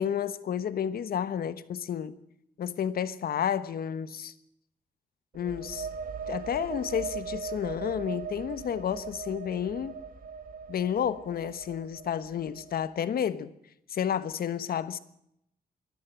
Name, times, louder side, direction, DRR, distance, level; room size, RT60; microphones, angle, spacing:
voice 1, 0.0-2.2 2.6-4.3 5.3-5.9 6.3-10.0 10.7-13.5 13.9-15.0, left 8 dB, 75° left, 1.2 m, -31 dB
sound 1, 5.3-12.9, right 5 dB, 65° right, 1.9 m, -40 dB
23.0 x 13.0 x 9.1 m
cardioid pair, 95°, 16 cm